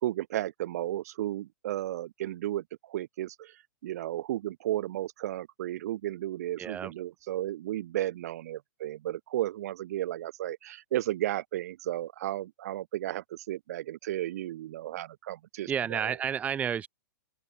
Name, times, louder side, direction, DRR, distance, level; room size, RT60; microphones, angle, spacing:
voice 1, 0.0-3.5 3.8-16.1, right 14 dB, 55° right, 3.2 m, -34 dB
voice 2, 6.6-6.9 15.7-16.9, right 8 dB, 15° right, 1.8 m, -31 dB
open air
hypercardioid pair, 150°, 10 cm